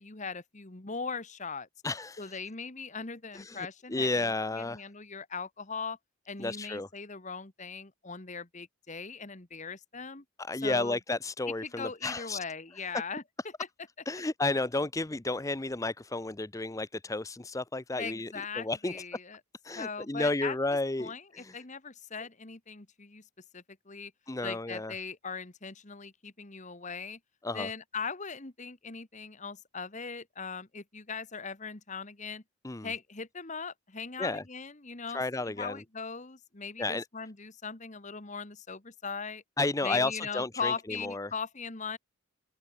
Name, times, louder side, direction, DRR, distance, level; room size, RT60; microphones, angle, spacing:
voice 1, 0.0-1.7 2.2-6.0 6.3-10.2 10.6-11.0 11.6-13.2 18.0-19.4 19.7-20.6 21.0-23.3 23.5-24.1 24.4-27.2 27.5-32.4 32.8-39.4 39.8-42.0, left 5 dB, 35° left, 1.4 m, -39 dB
voice 2, 1.8-2.3 3.3-4.8 6.4-6.9 10.4-12.4 14.1-18.3 18.6-18.9 19.6-21.6 24.3-24.9 27.4-27.7 32.6-32.9 34.2-34.4 35.1-35.7 36.8-37.0 39.6-40.7 41.0-41.3, left 2 dB, 15° left, 0.5 m, -32 dB
open air
head